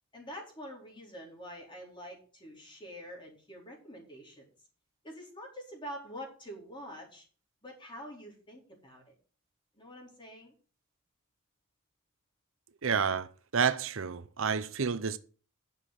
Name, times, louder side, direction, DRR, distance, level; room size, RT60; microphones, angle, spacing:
voice 1, 0.1-4.5 5.0-7.2 7.6-9.0 9.8-10.5, equal, 20° left, 4.3 m, -46 dB
voice 2, 12.8-13.3 13.5-15.2, right 6 dB, 65° right, 0.7 m, -29 dB
10.5 x 7.1 x 6.1 m
head